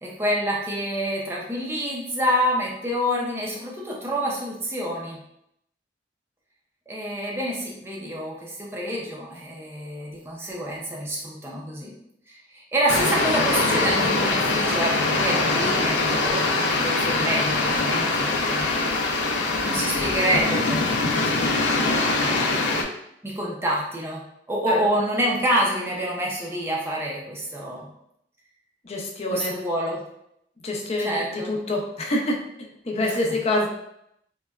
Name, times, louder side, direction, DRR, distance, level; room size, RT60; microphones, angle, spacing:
voice 1, 0.0-5.2 6.9-11.9 12.3-19.0 19.6-22.7 23.2-24.2 24.5-27.9 29.3-30.0 31.0-31.5 33.0-33.1, equal, 15° right, -3 dB, 0.5 m, -27 dB
sound 1, 12.9-22.8, left 3 dB, 85° left, 0.5 m, -23 dB
voice 2, 28.8-29.5 30.6-32.4 32.9-33.7, left 1 dB, 35° left, 0 dB, 0.6 m, -26 dB
3.9 x 2.2 x 2.3 m, 0.76 s
head